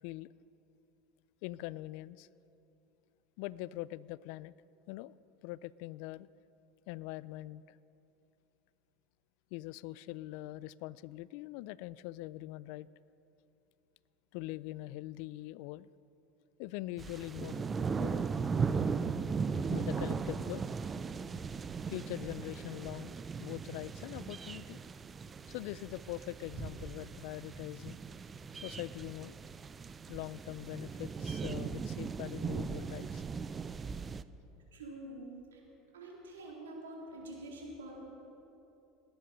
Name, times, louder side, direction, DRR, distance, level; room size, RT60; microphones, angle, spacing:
voice 1, 1.4-2.3 3.4-4.5 4.9-5.1 5.4-6.3 6.9-7.8 9.5-12.9 14.3-15.9 16.6-17.7 18.0-18.2 19.7-20.6 21.9-24.8 25.5-28.0 28.5-29.4 30.1-33.2, left 17 dB, 65° left, 20 dB, 0.3 m, -43 dB
sound 1, 17.0-34.2, right 5 dB, 25° right, 0.5 m, -38 dB
voice 2, 34.7-35.6 35.9-37.9, right 1 dB, 85° right, -3 dB, 3.9 m, -46 dB
19.0 x 10.5 x 5.3 m, 2.8 s
hypercardioid pair, 80°, 0 cm